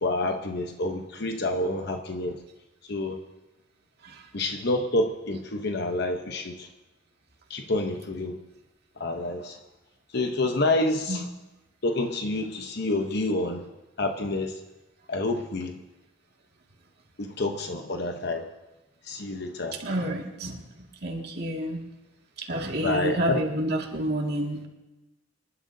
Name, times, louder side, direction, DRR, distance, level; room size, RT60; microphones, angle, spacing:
voice 1, 0.0-2.4 2.9-3.2 4.3-6.7 7.5-8.4 9.0-9.6 10.1-11.3 11.8-13.6 14.0-14.5 15.1-15.8 17.2-18.5 19.0-19.8 22.8-23.4, left 2 dB, 60° left, 4 dB, 0.9 m, -28 dB
voice 2, 19.8-20.6 21.0-21.8 22.5-24.7, right 1 dB, 55° right, 0 dB, 2.1 m, -29 dB
26.5 x 11.5 x 2.7 m, 1.0 s
head